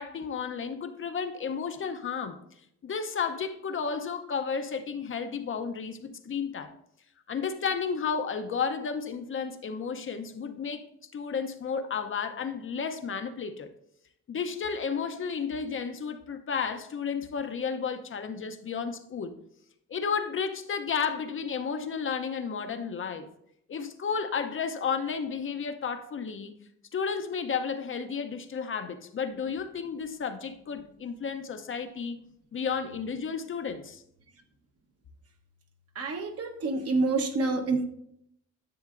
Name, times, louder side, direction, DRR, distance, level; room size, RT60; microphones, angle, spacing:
voice 1, 0.0-2.4 2.8-6.7 7.3-10.9 11.1-13.7 14.3-19.4 19.9-23.3 23.7-26.5 26.9-32.2 32.5-34.0, left 6 dB, 40° left, 0.7 m, -32 dB
voice 2, 35.9-37.9, right 3 dB, 50° right, 1.1 m, -27 dB
10.5 x 6.4 x 2.5 m
cardioid pair, 90°, 30 cm